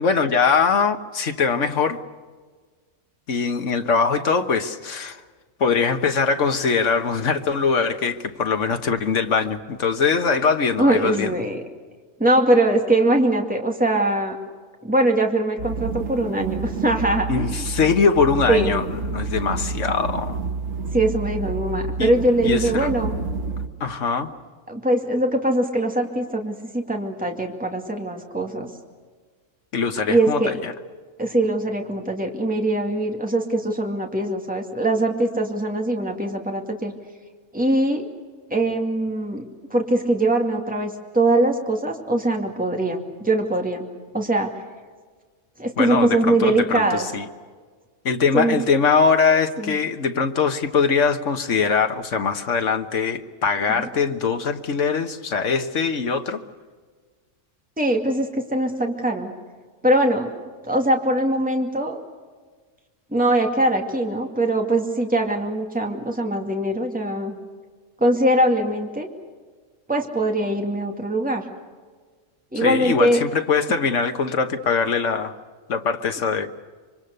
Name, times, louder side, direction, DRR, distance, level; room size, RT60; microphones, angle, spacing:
voice 1, 0.0-2.0 3.3-5.2 5.6-11.3 17.3-20.4 22.0-22.1 22.4-22.9 23.8-24.3 29.7-30.7 45.8-47.2 48.0-56.4 72.5-75.3 75.7-76.5, left 5 dB, 70° left, 8 dB, 1.6 m, -22 dB
voice 2, 10.8-11.6 12.2-14.4 14.8-17.6 18.5-18.8 20.9-23.1 24.7-28.7 30.1-30.5 31.2-36.9 37.5-38.1 38.5-39.4 39.7-43.9 44.1-44.6 45.6-47.1 48.3-48.6 49.6-49.8 53.8-53.9 57.8-59.3 59.8-60.3 60.6-62.0 63.1-67.3 68.0-69.1 69.9-71.4 72.5-73.2, right 1 dB, 5° right, 2 dB, 2.3 m, -22 dB
sound 1, 15.6-23.7, right 4 dB, 65° right, 1.6 m, -29 dB
26.0 x 24.5 x 6.7 m, 1.5 s
omnidirectional pair, 1.3 m